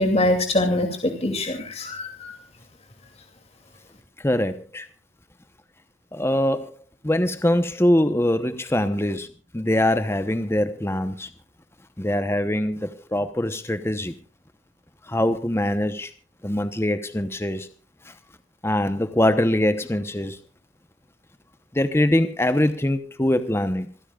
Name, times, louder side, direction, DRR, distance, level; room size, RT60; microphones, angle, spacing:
voice 1, 0.0-2.3, left 1 dB, 30° left, 5 dB, 2.6 m, -23 dB
voice 2, 4.2-4.9 6.1-6.7 7.0-9.3 9.5-11.3 12.0-14.1 15.1-16.1 16.4-17.7 18.0-18.1 18.6-20.4 21.7-23.9, left 1 dB, 15° left, 10 dB, 0.9 m, -23 dB
27.0 x 15.5 x 2.4 m, 0.34 s
head